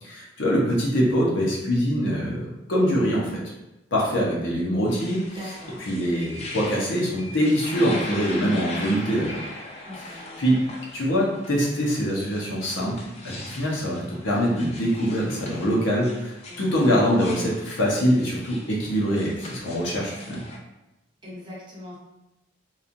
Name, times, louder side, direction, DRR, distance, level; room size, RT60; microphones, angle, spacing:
voice 1, 0.0-3.4 3.9-5.3 5.8-9.3 10.4-10.6 10.9-12.9 13.2-20.4, equal, 75° left, -4 dB, 0.8 m, -24 dB
sound 1, 4.9-20.6, left 2 dB, 35° left, 0.4 m, -41 dB
voice 2, 5.3-5.9 9.8-10.4 16.5-17.0 21.2-22.0, left 1 dB, 25° right, -6 dB, 0.8 m, -41 dB
3.0 x 2.4 x 2.5 m, 0.95 s
head